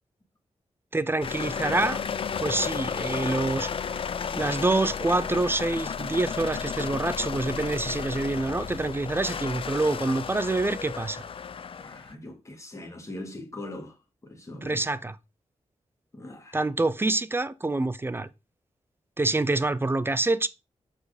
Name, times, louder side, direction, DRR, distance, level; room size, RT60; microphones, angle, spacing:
voice 1, 0.9-2.0 2.4-11.2 14.6-15.1 16.5-18.3 19.2-20.5, right 2 dB, 20° right, 0.4 m, -26 dB
sound 1, 1.2-12.1, left 6 dB, 50° left, 0.4 m, -33 dB
voice 2, 11.7-14.8 16.1-16.7, left 1 dB, 25° left, 1.9 m, -41 dB
7.2 x 4.3 x 4.9 m
wide cardioid pair, 145°, 12 cm